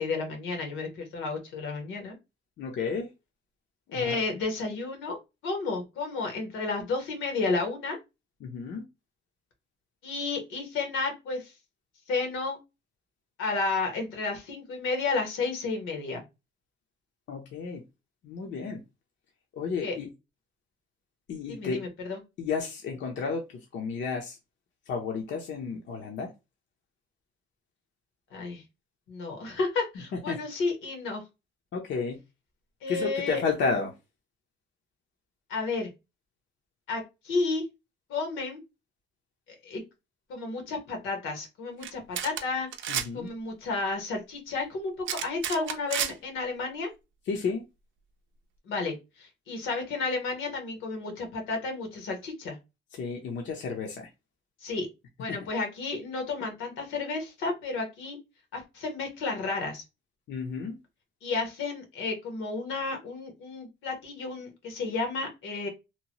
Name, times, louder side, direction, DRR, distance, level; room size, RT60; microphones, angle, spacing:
voice 1, 0.0-2.2 3.9-5.2 5.4-8.0 10.0-11.5 12.1-12.6 13.4-16.2 19.8-20.0 21.5-22.2 28.3-28.6 29.1-31.2 32.8-33.4 35.5-35.9 36.9-37.6 38.1-38.6 39.6-39.8 40.3-42.7 43.1-46.9 48.7-52.6 54.6-54.9 55.2-58.2 58.5-59.8 61.2-65.7, left 3 dB, 90° left, 1.0 m, -32 dB
voice 2, 2.6-3.1 3.9-4.2 8.4-8.8 17.3-17.8 18.2-18.8 19.5-20.1 21.3-21.8 22.4-24.4 24.9-26.3 30.3-30.4 31.7-32.2 32.9-33.9 42.9-43.3 47.3-47.6 52.9-54.1 55.3-55.4 60.3-60.8, left 5 dB, 65° left, 0.6 m, -32 dB
sound 1, 41.8-41.9 42.2-42.4 42.7-43.1 45.1-46.1, right 9 dB, 75° right, 0.5 m, -30 dB
2.9 x 2.1 x 2.8 m
cardioid pair, 90°, 20 cm